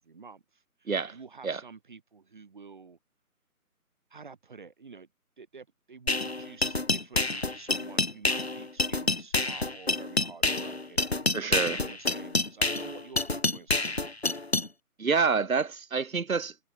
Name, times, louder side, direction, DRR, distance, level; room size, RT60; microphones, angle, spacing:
voice 1, 0.0-3.0 4.1-5.1 5.4-14.2, right 5 dB, 35° right, 5.9 m, -49 dB
sound 1, 6.1-14.7, left 2 dB, 45° left, 0.5 m, -28 dB
voice 2, 11.3-11.8 15.0-16.7, right 5 dB, 65° right, 1.6 m, -27 dB
figure-of-eight pair, 175°, 45 cm